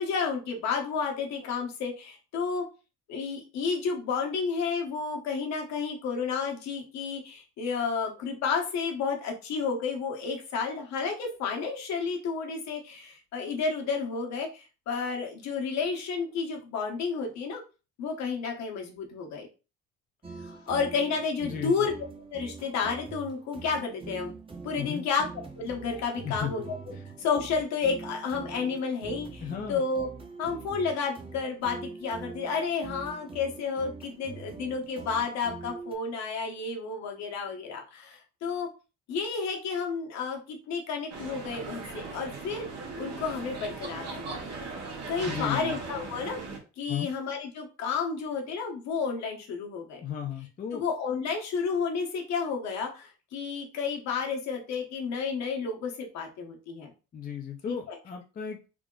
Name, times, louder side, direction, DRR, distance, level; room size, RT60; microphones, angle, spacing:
voice 1, 0.0-2.6 3.1-17.6 18.0-19.5 20.4-21.9 22.3-24.3 24.6-25.2 25.5-26.6 27.2-30.1 30.4-38.7 39.1-42.7 43.0-44.4 44.7-46.4 46.8-50.0 50.7-56.9 57.7-58.0, left 5 dB, 65° left, 2 dB, 1.1 m, -31 dB
sound 1, 20.2-36.0, right 4 dB, 20° right, 0.8 m, -44 dB
voice 2, 21.4-21.9 24.8-25.0 26.2-26.5 26.9-27.0 29.4-29.8 45.2-45.7 46.9-47.1 50.0-50.8 57.1-58.7, left 8 dB, 30° left, 2 dB, 0.6 m, -35 dB
sound 2, 41.1-46.6, right 3 dB, 60° right, 1.4 m, -38 dB
3.5 x 2.1 x 3.7 m, 0.32 s
cardioid pair, 100°, 29 cm